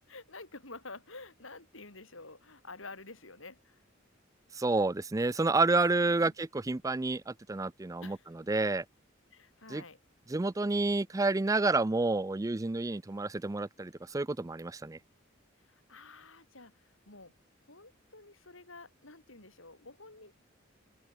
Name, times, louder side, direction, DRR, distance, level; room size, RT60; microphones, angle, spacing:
voice 1, 0.1-3.8 8.0-8.3 9.3-10.0 15.6-17.3 17.6-20.4, left 3 dB, 80° left, 7.0 m, -50 dB
voice 2, 4.5-8.2 8.5-8.9 9.7-9.8 10.3-15.0, right 3 dB, 15° right, 0.4 m, -29 dB
open air
head